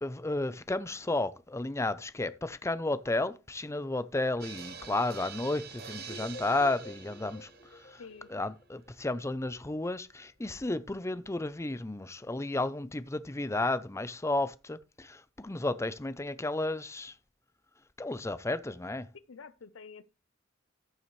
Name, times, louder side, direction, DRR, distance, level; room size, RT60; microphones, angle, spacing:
voice 1, 0.0-8.0 8.3-17.1 18.0-19.1, left 2 dB, 15° left, 0.5 m, -33 dB
sound 1, 4.4-9.5 9.7-9.8 10.1-10.2, right 7 dB, 50° right, 1.3 m, -47 dB
sound 2, 6.0-8.9, left 2 dB, 40° left, 1.4 m, -49 dB
voice 2, 8.0-8.5 19.3-20.1, left 5 dB, 80° left, 0.6 m, -49 dB
14.0 x 7.0 x 3.2 m
head